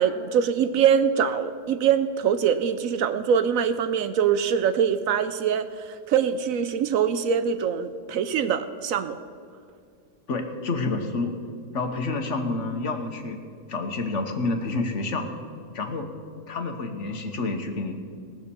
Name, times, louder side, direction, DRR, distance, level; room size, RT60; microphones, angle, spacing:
voice 1, 0.0-9.2, right 7 dB, 70° right, 11 dB, 0.9 m, -23 dB
voice 2, 10.3-11.3 11.7-13.4 13.7-15.3 15.7-16.1 16.5-18.0, left 3 dB, 55° left, 5 dB, 1.4 m, -28 dB
18.0 x 6.6 x 6.9 m, 2.3 s
omnidirectional pair, 1.6 m